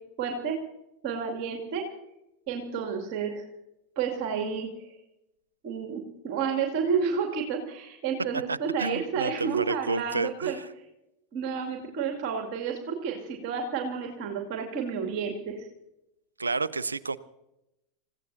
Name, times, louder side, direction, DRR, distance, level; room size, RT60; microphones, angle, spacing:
voice 1, 0.2-0.6 1.0-1.9 2.5-3.4 4.0-4.9 5.6-10.6 11.3-15.7, right 6 dB, 45° right, 2 dB, 2.5 m, -30 dB
voice 2, 8.5-10.7 16.4-17.2, right 4 dB, 80° right, 18 dB, 0.6 m, -30 dB
29.0 x 16.0 x 2.8 m, 0.88 s
figure-of-eight pair, 85°, 0 cm